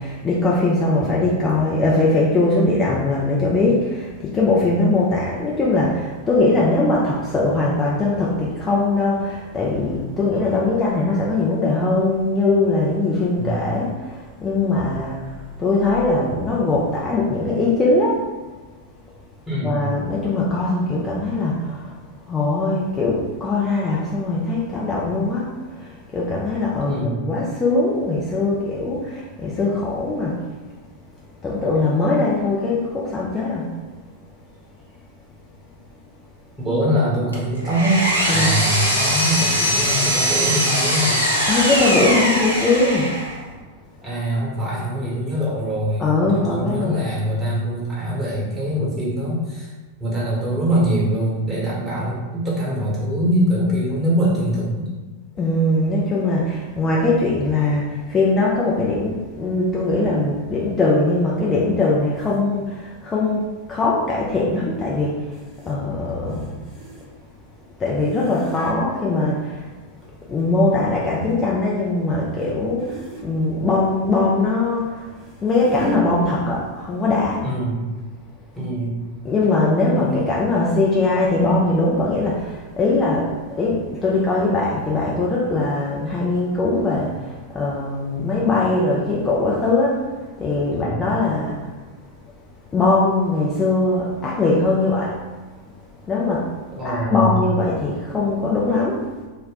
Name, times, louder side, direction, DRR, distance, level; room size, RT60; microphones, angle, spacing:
voice 1, 0.0-18.2 19.6-21.9 22.3-30.4 31.4-33.7 38.3-38.6 41.5-43.1 46.0-47.1 55.4-63.4 63.7-65.3 65.7-66.6 67.8-69.7 70.3-77.4 79.2-90.0 90.4-91.7 92.7-95.2 96.1-96.5 96.8-99.0, left 2 dB, 20° left, -5 dB, 0.4 m, -21 dB
voice 2, 19.5-19.8 26.8-27.2 36.6-38.0 38.3-41.2 44.0-46.1 46.3-49.7 50.0-54.9 77.4-77.8 78.5-78.9 80.0-80.1 90.7-91.0 96.7-97.4, equal, 15° right, -6 dB, 1.2 m, -23 dB
Power tool, 37.3-43.4, equal, 90° left, 0.6 m, -21 dB
sound 1, 62.2-62.4 65.3-65.8 66.1-67.3 67.9-68.8 69.8-70.6 71.1-71.4 72.4-72.5 72.8-73.3 74.8-76.0 76.9-77.1 77.3-77.4 78.0-78.1, right 1 dB, ahead, 1.1 m, -36 dB
2.5 x 2.1 x 3.9 m, 1.3 s
figure-of-eight pair, 90°, 0 cm